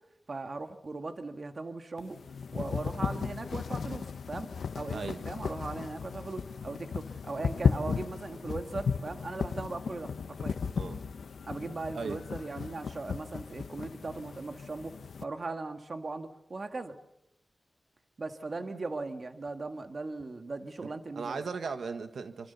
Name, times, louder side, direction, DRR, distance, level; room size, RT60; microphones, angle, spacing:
voice 1, 0.3-2.2 2.5-4.5 4.7-10.6 11.4-17.0 18.2-21.5, right 3 dB, 40° right, 7 dB, 1.8 m, -39 dB
sound 1, 2.0-15.2, left 6 dB, 85° left, 1.2 m, -35 dB
voice 2, 20.8-22.5, right 5 dB, 85° right, 8 dB, 1.5 m, -37 dB
27.0 x 25.0 x 7.0 m, 0.83 s
wide cardioid pair, 145°, 0 cm